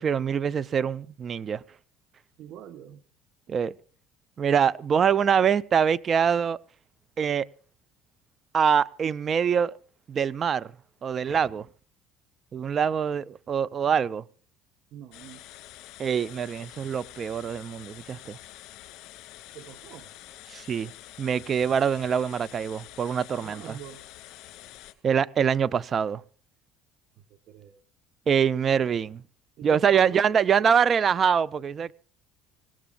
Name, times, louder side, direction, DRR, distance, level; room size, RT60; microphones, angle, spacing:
voice 1, 0.0-1.6 3.5-3.7 4.4-6.6 7.2-7.5 8.5-9.8 10.1-10.7 11.0-11.7 12.5-14.2 16.0-18.4 20.5-20.9 21.2-23.8 25.0-26.2 28.3-29.2 29.6-31.9, right 7 dB, 35° right, 0.6 m, -24 dB
voice 2, 2.4-3.0 14.9-15.4 19.5-20.1 23.4-24.0 27.5-27.8 29.6-30.2, right 10 dB, 60° right, 1.3 m, -43 dB
sound 1, 15.1-24.9, left 15 dB, 70° left, 2.3 m, -47 dB
25.0 x 18.5 x 2.5 m
cardioid pair, 110°, 0 cm